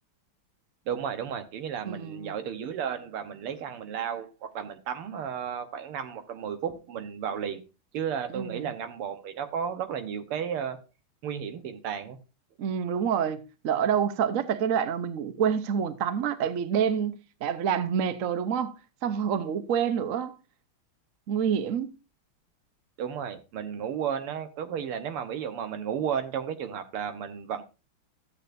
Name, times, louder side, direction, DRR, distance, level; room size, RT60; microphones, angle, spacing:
voice 1, 0.9-7.6 7.9-10.8 11.2-12.2 23.0-27.6, right 8 dB, 85° right, 2.0 m, -33 dB
voice 2, 1.9-2.3 8.3-8.7 12.6-17.2 17.4-18.7 19.0-20.3 21.3-21.9, right 8 dB, 60° right, 0.8 m, -27 dB
14.0 x 8.4 x 2.6 m
omnidirectional pair, 2.4 m